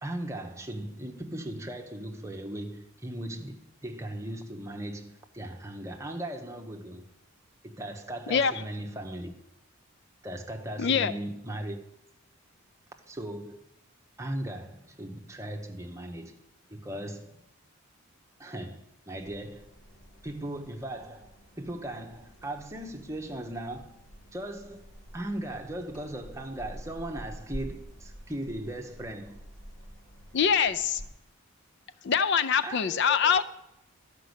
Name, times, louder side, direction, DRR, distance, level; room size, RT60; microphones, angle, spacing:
voice 1, 0.0-7.1 7.6-9.3 10.2-11.8 13.1-13.7 14.2-16.4 16.7-17.4 18.4-19.7 20.2-24.0 24.3-24.9 25.1-29.4 32.6-33.4, right 1 dB, 15° right, 1.0 m, -38 dB
voice 2, 10.8-11.1 30.3-31.0 32.0-33.4, left 7 dB, 50° left, 0.4 m, -24 dB
sound 1, 19.2-31.1, equal, 35° left, 4.4 m, -48 dB
12.0 x 5.3 x 8.0 m
head